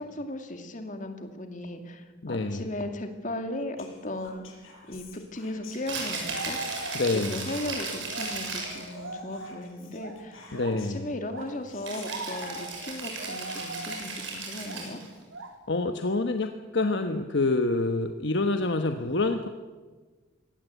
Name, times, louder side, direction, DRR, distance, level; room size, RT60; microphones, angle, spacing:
voice 1, 0.0-4.4 4.9-6.6 7.1-10.5 10.9-15.0, left 1 dB, 40° left, 6 dB, 2.4 m, -36 dB
voice 2, 2.2-2.6 6.9-7.5 10.5-11.1 15.7-19.5, left 2 dB, 60° left, 6 dB, 1.1 m, -27 dB
Whispering, 3.8-6.3 6.6-11.1 11.4-11.5 11.7-14.0, left 4 dB, 90° left, 5.7 m, -51 dB
Rattle (instrument), 5.7-8.9 11.8-15.1, right 4 dB, 70° right, 6.9 m, -36 dB
sound 1, 6.1-7.3 7.6-10.9 11.3-14.2 14.6-15.0 15.3-15.6, right 2 dB, 90° right, 2.9 m, -40 dB
23.0 x 18.0 x 8.3 m, 1.3 s
head